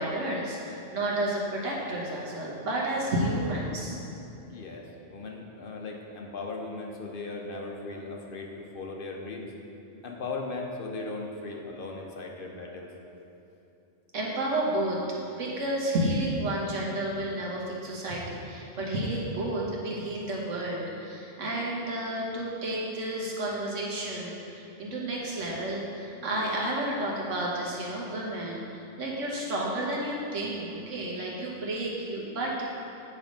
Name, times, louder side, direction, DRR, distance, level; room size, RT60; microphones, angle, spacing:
voice 1, 0.0-4.0 14.1-15.0 15.4-32.7, right 1 dB, 80° right, -3 dB, 1.5 m, -31 dB
voice 2, 4.5-9.5 10.0-12.9, left 3 dB, 55° left, 0 dB, 0.7 m, -38 dB
8.8 x 3.3 x 5.1 m, 2.8 s
omnidirectional pair, 1.3 m